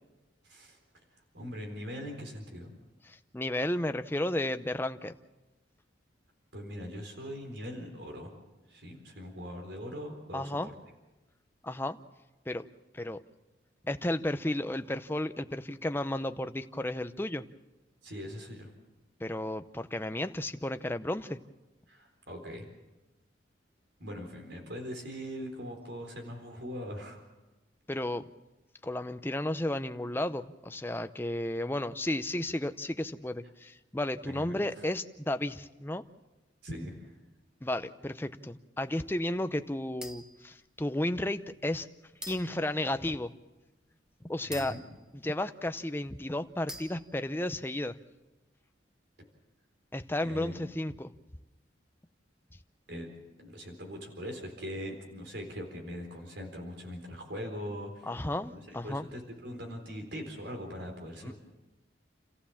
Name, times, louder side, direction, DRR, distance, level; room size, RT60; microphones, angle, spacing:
voice 1, 0.4-0.8 1.1-2.7 6.5-8.3 8.7-10.7 18.0-18.7 21.9-22.6 24.0-27.2 34.2-34.6 36.6-37.2 44.4-44.8 50.2-50.7 52.9-53.1 53.4-58.1 58.5-61.3, equal, 65° right, 3 dB, 4.1 m, -41 dB
voice 2, 3.1-5.1 10.3-10.7 11.6-12.0 12.5-12.6 12.9-13.2 13.8-17.4 19.2-21.4 27.9-28.2 28.8-36.0 37.6-41.9 42.3-43.3 44.2-44.7 45.1-48.0 49.9-51.1 58.1-59.1 61.2-61.3, left 1 dB, 10° left, 9 dB, 0.7 m, -33 dB
sound 1, 40.0-40.5 41.2-41.3 42.2-42.7 44.5-45.7 46.7-47.3, equal, 5° right, 1.2 m, -45 dB
29.0 x 15.0 x 7.2 m, 1.1 s
head